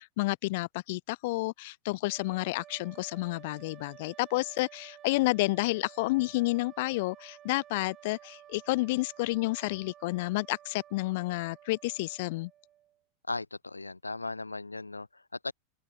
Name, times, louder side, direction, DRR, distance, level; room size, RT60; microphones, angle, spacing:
voice 1, 0.0-12.5, left 22 dB, 50° left, 0.3 m, -30 dB
sound 1, 2.1-13.0, right 11 dB, 30° right, 5.3 m, -54 dB
voice 2, 13.3-15.5, left 3 dB, 80° left, 1.1 m, -37 dB
open air
figure-of-eight pair, 90°, 0 cm